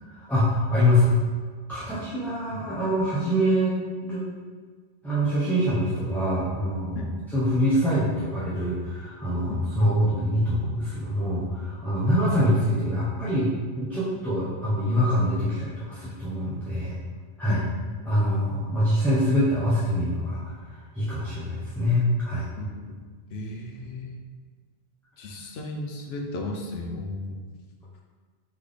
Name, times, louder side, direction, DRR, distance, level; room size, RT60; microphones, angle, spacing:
voice 1, 0.1-1.1 1.7-3.8 4.0-4.2 5.0-17.0 17.4-17.6 18.0-20.6 20.9-22.4, equal, ahead, -11 dB, 0.7 m, -24 dB
voice 2, 22.6-23.0 23.3-24.2 25.2-27.5, left 2 dB, 80° left, 1 dB, 0.9 m, -35 dB
4.2 x 3.5 x 3.3 m, 1.5 s
omnidirectional pair, 1.0 m